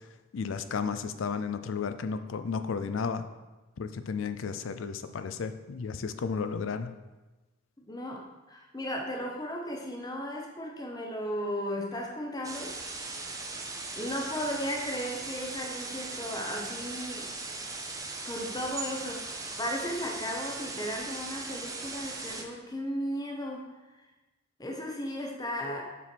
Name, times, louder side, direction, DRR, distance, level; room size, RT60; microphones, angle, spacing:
voice 1, 0.3-3.2 3.8-6.9, left 5 dB, 80° left, 10 dB, 0.4 m, -33 dB
voice 2, 7.8-12.7 13.0-13.4 14.0-17.3 18.2-23.8 24.6-25.8, equal, 20° left, 0 dB, 0.7 m, -35 dB
sound 1, 12.4-22.4, right 3 dB, 15° right, 0.6 m, -39 dB
6.9 x 4.3 x 4.4 m, 1.1 s
head